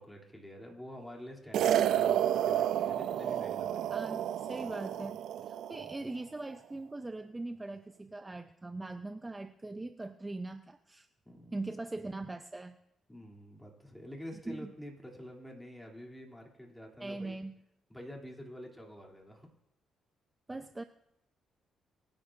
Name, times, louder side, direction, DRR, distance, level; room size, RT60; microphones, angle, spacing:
voice 1, 0.0-3.9 5.8-6.0 11.2-11.6 13.1-17.4 17.9-19.5, equal, 5° left, 0 dB, 2.8 m, -48 dB
sound 1, 1.5-6.0, right 10 dB, 75° right, 0.5 m, -30 dB
voice 2, 3.9-11.1 11.5-12.8 14.5-14.7 17.0-17.5 20.5-20.8, right 2 dB, 15° right, 8 dB, 0.6 m, -41 dB
25.5 x 10.5 x 2.5 m, 0.82 s
cardioid pair, 90°, 0 cm